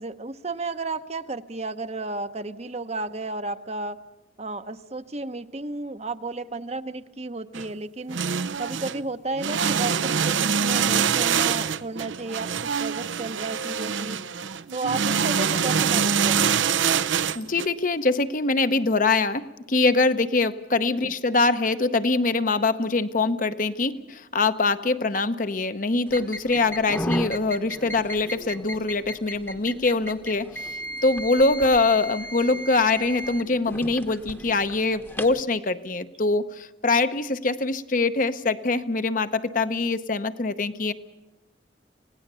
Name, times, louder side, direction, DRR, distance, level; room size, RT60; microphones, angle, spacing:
voice 1, 0.0-4.0 4.4-8.2 8.6-12.5 12.8-14.2 14.7-16.7 20.9-21.1, right 3 dB, 35° right, 10 dB, 0.8 m, -33 dB
sound 1, 7.5-7.7 8.1-9.0 9.4-17.7, right 7 dB, 80° right, 0.7 m, -24 dB
voice 2, 17.3-30.7 31.0-40.9, left 3 dB, 45° left, 11 dB, 0.8 m, -23 dB
sound 2, 26.1-35.4, equal, 10° left, 1.0 m, -35 dB
26.5 x 18.0 x 6.8 m, 1.1 s
head